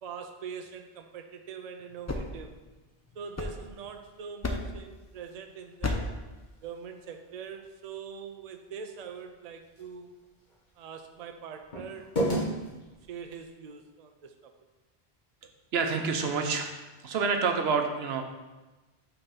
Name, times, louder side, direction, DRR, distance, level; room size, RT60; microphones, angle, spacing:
voice 1, 0.0-2.5 3.1-6.1 6.6-10.1 10.8-12.8 13.1-14.5, right 6 dB, 50° right, 6 dB, 0.5 m, -43 dB
sound 1, 1.8-4.0 4.4-4.9 5.8-6.3, left 2 dB, 25° left, 0.4 m, -34 dB
sound 2, 3.2-13.5, right 1 dB, 50° left, 1.4 m, -39 dB
voice 2, 15.7-16.8 17.0-18.2, right 5 dB, 80° right, 5 dB, 1.0 m, -28 dB
5.7 x 4.0 x 5.7 m, 1.1 s
omnidirectional pair, 1.0 m